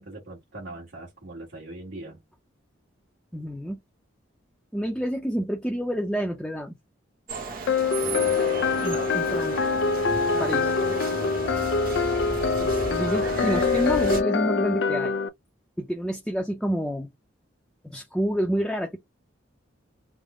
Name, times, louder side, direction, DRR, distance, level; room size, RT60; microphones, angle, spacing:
voice 1, 0.0-2.2 8.0-11.3, right 2 dB, 65° right, 1.6 m, -41 dB
voice 2, 3.3-3.8 4.7-6.7 8.8-9.5 10.4-10.7 12.6-15.1 15.8-17.1 17.8-19.0, equal, 5° left, 0.6 m, -28 dB
sound 1, 7.3-14.2, right 3 dB, 45° right, 1.0 m, -34 dB
sound 2, 7.7-15.3, left 4 dB, 60° left, 0.4 m, -24 dB
3.6 x 2.1 x 3.6 m
head